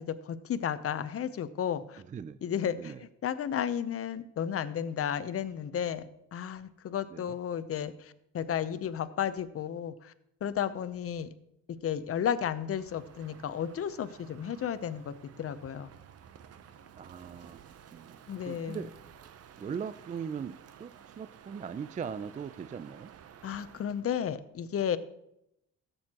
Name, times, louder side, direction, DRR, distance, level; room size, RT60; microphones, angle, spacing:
voice 1, 0.0-2.0 2.4-2.9 3.2-10.1 10.4-11.3 11.7-15.9 18.3-18.8 23.4-25.0, left 9 dB, 50° left, 13 dB, 0.7 m, -33 dB
voice 2, 2.0-2.4 2.7-3.0 7.1-7.4 17.0-17.6 17.9-18.9 19.6-23.1, right 7 dB, 25° right, 13 dB, 0.4 m, -40 dB
Crow, 12.6-24.1, right 8 dB, 55° right, 0.7 m, -53 dB
13.5 x 8.0 x 2.9 m, 0.79 s
cardioid pair, 90°, 30 cm